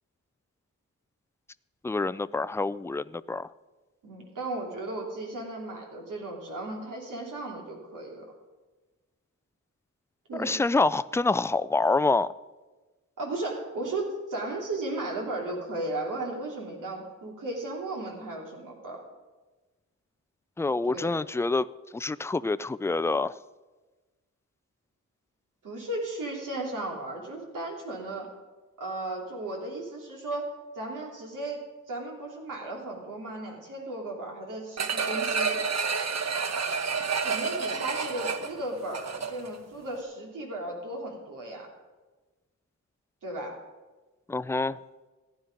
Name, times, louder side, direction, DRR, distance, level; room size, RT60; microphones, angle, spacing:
voice 1, 1.8-3.5 10.3-12.3 20.6-21.7 21.9-23.3 44.3-44.8, left 3 dB, 10° left, 16 dB, 0.3 m, -26 dB
voice 2, 4.0-8.3 10.3-10.6 13.2-19.0 20.9-21.1 25.6-28.3 28.8-30.4 30.7-35.6 37.2-41.7 43.2-43.6, right 2 dB, 85° right, 0 dB, 2.9 m, -35 dB
sound 1, 34.8-39.6 40.0-40.1, right 5 dB, 60° right, 1.1 m, -29 dB
15.0 x 9.9 x 5.2 m, 1.2 s
cardioid pair, 70°, 31 cm